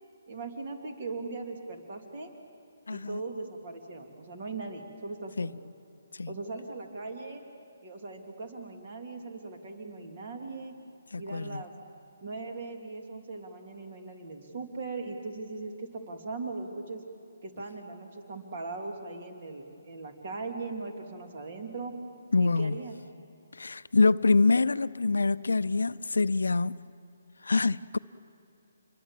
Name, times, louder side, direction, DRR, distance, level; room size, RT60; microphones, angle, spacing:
voice 1, 0.3-2.3 2.9-5.5 6.3-7.4 7.8-10.8 11.2-11.7 12.2-17.0 17.4-21.9 22.4-22.9, right 3 dB, 45° right, 2.9 m, -39 dB
voice 2, 2.9-3.2 5.4-5.5 6.1-6.3 11.1-11.6 22.3-22.8 23.5-26.8 27.4-28.0, left 3 dB, 80° left, 0.5 m, -25 dB
28.0 x 22.0 x 7.5 m
figure-of-eight pair, 145°, 0 cm